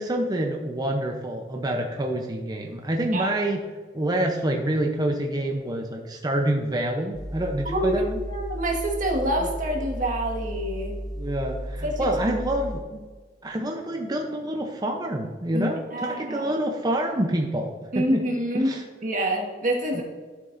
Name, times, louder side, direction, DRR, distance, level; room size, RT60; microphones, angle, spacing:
voice 1, 0.0-3.6 3.9-8.2 11.2-12.8 13.4-18.2 18.5-18.8 19.9-20.0, right 1 dB, 20° right, 2 dB, 0.7 m, -27 dB
sound 1, 7.1-12.8, equal, 20° left, 0.9 m, -34 dB
voice 2, 7.6-8.0 8.3-11.0 11.8-12.1 15.5-16.5 17.9-18.7 19.0-20.0, right 1 dB, 45° right, 0 dB, 1.7 m, -27 dB
12.0 x 7.3 x 2.6 m, 1.5 s
head